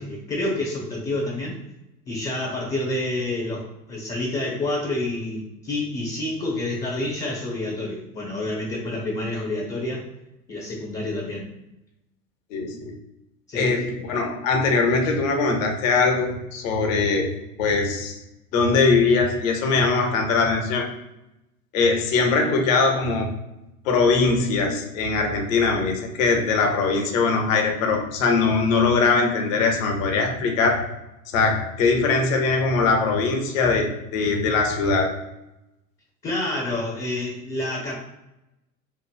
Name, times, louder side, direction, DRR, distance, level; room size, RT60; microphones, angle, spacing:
voice 1, 0.0-1.6 2.1-10.0 10.5-11.5 13.5-13.7 36.2-38.0, left 2 dB, 15° left, -3 dB, 0.5 m, -28 dB
voice 2, 12.5-12.9 13.5-17.3 17.6-18.2 18.5-20.9 21.7-23.3 23.8-30.9 31.3-35.2, left 4 dB, 55° left, 2 dB, 0.7 m, -21 dB
3.0 x 2.5 x 2.3 m, 0.91 s
figure-of-eight pair, 85°, 48 cm